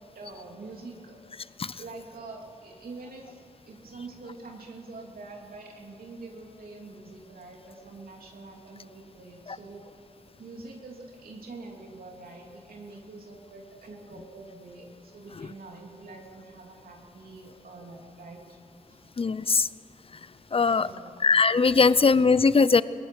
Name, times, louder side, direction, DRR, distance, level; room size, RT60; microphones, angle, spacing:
voice 1, 0.1-1.2 1.8-9.8 10.4-18.6 18.9-19.0 19.4-19.6 20.6-21.2 21.9-22.1, right 3 dB, 85° right, 0 dB, 3.1 m, -45 dB
voice 2, 19.2-19.7 20.5-20.9 21.2-22.8, left 4 dB, 40° left, 17 dB, 0.6 m, -20 dB
22.0 x 18.5 x 6.3 m, 2.8 s
cardioid pair, 65°, 15 cm